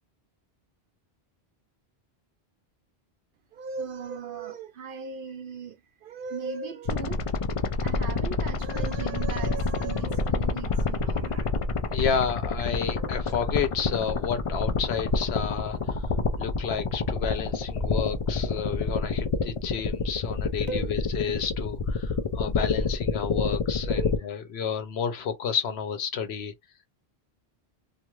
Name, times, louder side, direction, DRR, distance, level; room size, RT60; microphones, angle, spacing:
voice 1, 3.5-7.2 7.8-11.5 12.8-13.5 20.7-20.9 23.8-24.3, right 5 dB, 60° right, 0.7 m, -38 dB
sound 1, 6.8-24.2, left 4 dB, 55° left, 0.3 m, -28 dB
voice 2, 11.9-16.0 16.4-26.5, left 7 dB, 80° left, 1.0 m, -31 dB
2.5 x 2.3 x 3.0 m
omnidirectional pair, 1.1 m